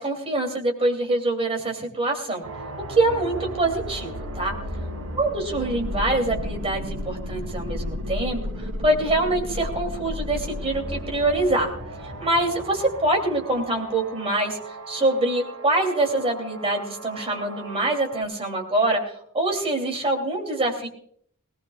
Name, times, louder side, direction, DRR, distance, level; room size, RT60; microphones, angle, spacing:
voice 1, 0.0-2.4 2.9-4.5 5.2-11.7 12.0-19.0 19.3-20.9, right 2 dB, 25° right, 2 dB, 3.0 m, -24 dB
sound 1, 2.4-18.2, equal, 80° right, 2.9 m, -34 dB
19.0 x 18.5 x 2.4 m, 0.63 s
head